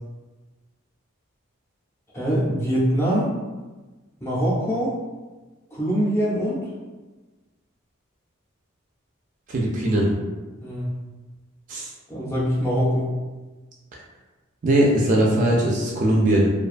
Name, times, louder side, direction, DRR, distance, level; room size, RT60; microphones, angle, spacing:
voice 1, 2.1-3.3 4.2-4.9 5.7-6.6 10.6-10.9 12.1-13.2, equal, 10° left, -7 dB, 0.6 m, -23 dB
voice 2, 9.5-10.1 11.7-11.9 14.6-16.5, right 1 dB, 35° right, -3 dB, 0.3 m, -20 dB
2.4 x 2.2 x 2.4 m, 1.2 s
head